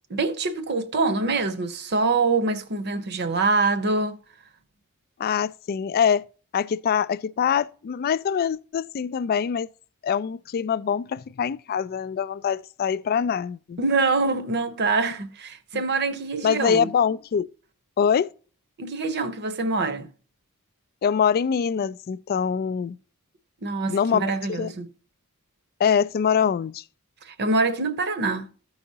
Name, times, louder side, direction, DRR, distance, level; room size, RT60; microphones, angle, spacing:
voice 1, 0.1-4.2 13.8-16.9 18.8-20.1 23.6-24.9 27.3-28.5, right 3 dB, 50° right, 0.8 m, -25 dB
voice 2, 5.2-6.2 6.5-9.7 10.0-13.8 15.7-15.8 16.4-17.5 18.0-18.3 21.0-23.0 23.9-24.2 24.5-24.7 25.8-26.8, left 7 dB, 45° left, 0.3 m, -24 dB
14.5 x 4.8 x 2.8 m
head